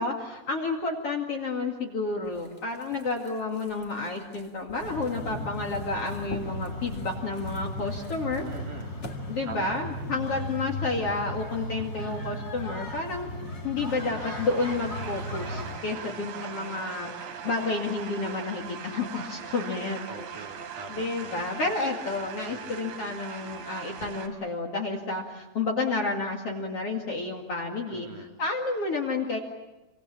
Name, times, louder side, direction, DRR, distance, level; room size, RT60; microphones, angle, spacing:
voice 1, 0.0-8.4 9.3-13.3 13.6-17.1 17.4-20.1 20.9-29.4, left 3 dB, 40° left, 1 dB, 2.6 m, -30 dB
sound 1, 2.2-9.2, left 3 dB, 65° left, 0.6 m, -46 dB
sound 2, 4.8-15.8, left 1 dB, 25° left, 3.2 m, -36 dB
voice 2, 8.4-9.0 9.5-9.8 15.9-16.3 20.1-21.4 22.5-22.8 27.9-28.3, right 4 dB, 55° right, 2 dB, 3.3 m, -44 dB
sound 3, 13.9-24.3, right 7 dB, 85° right, 4.5 m, -40 dB
27.5 x 25.5 x 7.4 m, 1.1 s
omnidirectional pair, 4.7 m